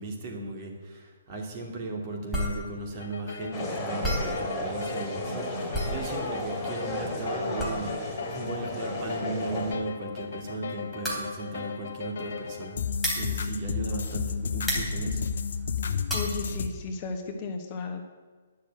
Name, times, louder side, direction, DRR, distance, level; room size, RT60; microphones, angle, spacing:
voice 1, 0.0-12.8 13.1-15.2, right 2 dB, 40° right, 1 dB, 2.6 m, -36 dB
sound 1, 2.3-14.3 14.6-16.4, equal, ahead, 3.3 m, -34 dB
sound 2, 3.0-16.7, left 5 dB, 60° left, 0.9 m, -34 dB
sound 3, 3.5-9.7, left 1 dB, 15° left, 2.6 m, -34 dB
voice 2, 16.1-18.0, left 4 dB, 35° left, 4 dB, 1.3 m, -34 dB
10.0 x 6.5 x 8.9 m, 1.4 s
hypercardioid pair, 140°, 0 cm